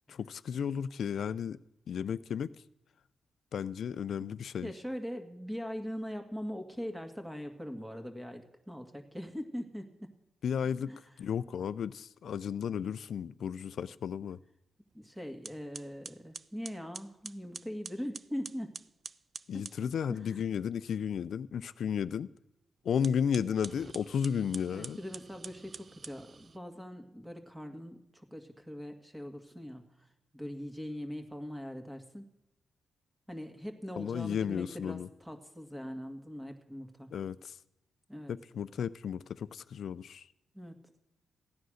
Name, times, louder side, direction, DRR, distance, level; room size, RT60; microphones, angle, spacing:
voice 1, 0.1-1.6 1.9-2.5 3.5-4.7 10.4-14.4 19.5-22.3 22.8-25.0 34.0-35.1 37.1-37.5 38.3-40.3, left 7 dB, 70° left, 0.4 m, -33 dB
voice 2, 4.6-10.1 10.9-11.0 14.9-18.8 19.5-20.4 24.7-30.1 30.3-32.2 33.3-37.1 38.1-38.3 40.5-40.8, equal, 10° right, 1.9 m, -41 dB
sound 1, 14.9-15.0 15.4-19.8 22.9-26.6, right 5 dB, 45° right, 0.4 m, -47 dB
15.5 x 9.4 x 6.4 m
cardioid pair, 75°, 0 cm